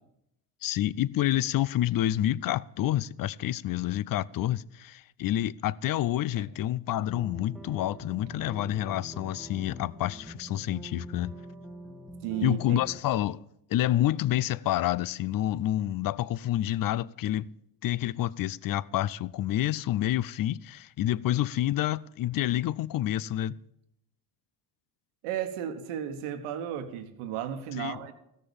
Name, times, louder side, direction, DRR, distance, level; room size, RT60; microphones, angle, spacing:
voice 1, 0.6-11.3 12.4-13.4 13.7-17.5 17.8-23.5 27.7-28.1, left 13 dB, 45° left, 0.5 m, -28 dB
sound 1, 7.1-13.0, equal, ahead, 1.3 m, -44 dB
voice 2, 12.2-12.8 25.2-28.1, right 10 dB, 80° right, 1.4 m, -34 dB
14.5 x 6.7 x 7.1 m
supercardioid pair, 70°, 50 cm